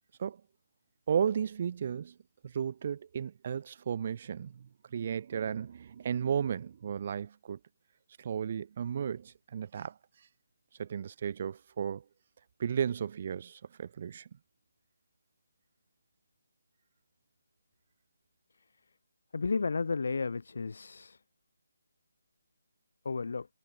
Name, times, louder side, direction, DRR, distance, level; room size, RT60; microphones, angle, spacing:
voice 1, 1.1-2.1 2.4-7.6 8.2-9.9 10.8-12.0 12.6-14.3, right 8 dB, 40° right, 0.6 m, -34 dB
voice 2, 19.3-21.2 23.0-23.5, left 4 dB, 65° left, 0.7 m, -32 dB
figure-of-eight pair, 160°, 0 cm